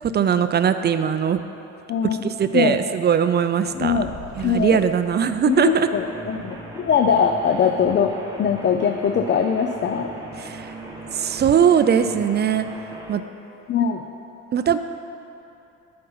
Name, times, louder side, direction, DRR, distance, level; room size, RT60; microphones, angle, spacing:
voice 1, 0.0-1.4 2.2-4.0 4.4-5.9 10.4-10.7 11.1-12.7 13.1-13.2 14.5-14.8, right 8 dB, 35° right, 10 dB, 0.4 m, -20 dB
voice 2, 1.9-2.8 3.7-4.1 4.4-4.8 5.5-8.1 8.4-10.1 13.7-14.0, left 7 dB, 40° left, 5 dB, 0.4 m, -21 dB
Fire, 3.7-6.2, left 2 dB, 70° left, 1.3 m, -42 dB
sound 1, 5.5-13.1, right 2 dB, 10° right, 1.1 m, -38 dB
9.1 x 4.4 x 5.5 m, 2.8 s
cardioid pair, 90°, 30 cm